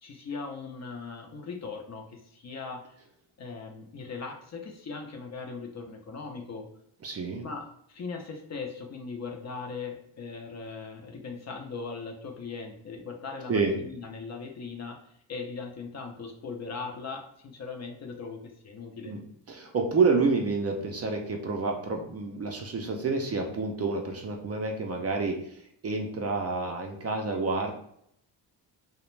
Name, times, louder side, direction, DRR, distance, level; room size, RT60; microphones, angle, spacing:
voice 1, 0.0-2.8 3.4-6.7 7.4-15.0 15.3-19.1, left 4 dB, 40° left, 3 dB, 0.5 m, -39 dB
voice 2, 7.0-7.4 13.5-13.7 19.1-19.2 19.5-27.7, right 4 dB, 35° right, 2 dB, 0.4 m, -28 dB
2.4 x 2.1 x 3.0 m, 0.70 s
cardioid pair, 80°, 45 cm